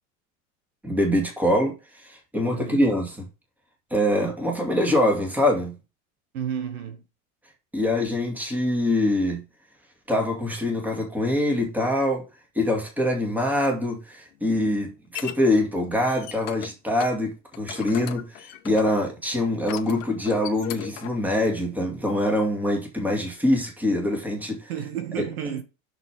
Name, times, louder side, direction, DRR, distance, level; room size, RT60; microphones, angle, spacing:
voice 1, 0.8-3.3 3.9-5.8 7.7-9.4 10.1-12.2 12.5-24.7 25.2-25.3, left 1 dB, 5° right, 2.2 m, -24 dB
voice 2, 2.5-2.9 6.3-7.0 24.7-25.6, right 9 dB, 85° right, 2.0 m, -31 dB
sound 1, 14.3-15.4 15.9-16.7 17.0-17.2 17.5-19.0 19.5-21.2, left 14 dB, 60° left, 1.2 m, -37 dB
6.5 x 6.1 x 3.5 m
supercardioid pair, 140°, 41 cm